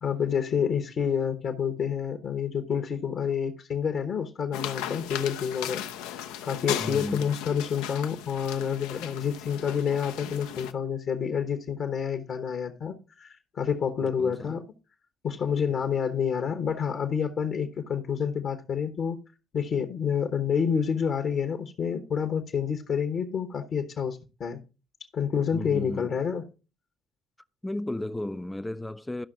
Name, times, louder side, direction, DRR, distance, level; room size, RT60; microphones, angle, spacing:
voice 1, 0.0-14.6 15.2-19.2 19.5-24.6 25.1-26.4, left 7 dB, 50° left, 1.1 m, -28 dB
sound 1, 4.5-10.7, left 11 dB, 70° left, 0.6 m, -36 dB
voice 2, 6.8-7.3 14.2-14.6 25.5-26.1 27.6-29.3, left 1 dB, 10° left, 0.5 m, -34 dB
12.5 x 5.9 x 3.8 m
figure-of-eight pair, 50°, 0 cm